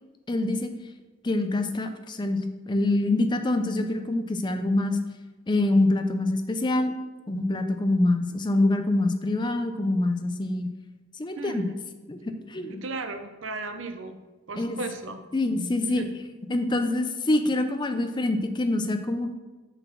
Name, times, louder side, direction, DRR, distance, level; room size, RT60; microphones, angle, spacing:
voice 1, 0.3-0.7 1.2-5.0 5.5-6.9 7.3-10.7 11.2-11.7 12.1-12.8 14.6-14.8 15.3-16.1 16.5-19.3, left 2 dB, 25° left, 8 dB, 0.5 m, -25 dB
voice 2, 11.4-11.8 12.7-14.2 14.5-15.2 15.8-16.1, right 3 dB, 70° right, 7 dB, 0.7 m, -36 dB
6.7 x 4.2 x 5.8 m, 1.2 s
head